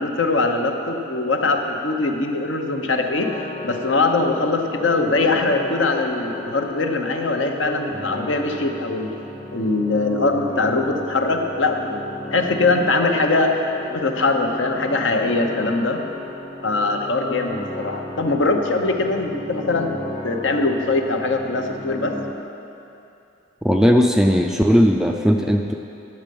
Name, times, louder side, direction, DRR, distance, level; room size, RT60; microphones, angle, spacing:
voice 1, 0.0-9.1 9.5-12.0 12.3-16.0 16.6-20.0 20.2-22.2, left 3 dB, 65° left, 4 dB, 0.8 m, -22 dB
sound 1, 3.1-22.3, left 2 dB, 20° left, 0.8 m, -34 dB
voice 2, 23.6-25.7, equal, 5° right, 2 dB, 0.3 m, -17 dB
10.5 x 7.5 x 5.3 m, 2.8 s
head